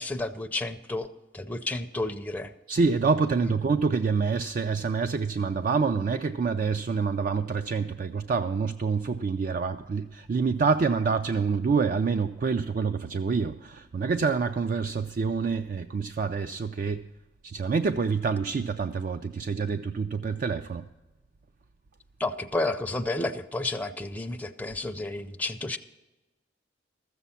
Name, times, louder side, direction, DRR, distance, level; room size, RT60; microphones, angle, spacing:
voice 1, 0.0-2.5 3.4-3.5 22.2-25.8, left 2 dB, 10° left, 6 dB, 0.5 m, -31 dB
voice 2, 2.7-17.0 17.4-20.9, right 5 dB, 50° right, 9 dB, 0.4 m, -27 dB
14.0 x 7.1 x 5.6 m, 1.1 s
head